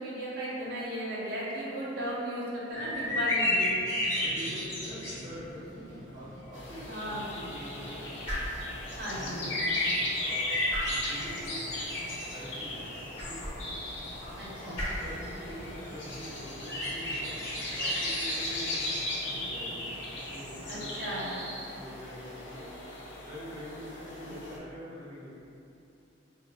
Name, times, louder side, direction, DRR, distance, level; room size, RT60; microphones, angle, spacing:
voice 1, 0.0-3.7 6.9-7.2 8.9-9.5 14.4-14.8 20.7-21.3, equal, 60° right, -7 dB, 0.8 m, -35 dB
sound 1, 2.7-20.7, left 1 dB, 15° left, 0.8 m, -35 dB
voice 2, 4.1-8.3 9.1-9.6 10.1-10.6 11.0-11.8 12.3-13.6 14.5-19.9 20.2-21.3 21.6-22.7 23.2-25.3, equal, 20° right, -12 dB, 1.2 m, -45 dB
sound 2, 6.5-24.6, left 1 dB, 65° left, 0.6 m, -38 dB
sound 3, 8.2-18.8, equal, 30° left, 1.3 m, -43 dB
3.1 x 2.0 x 4.0 m, 2.8 s
head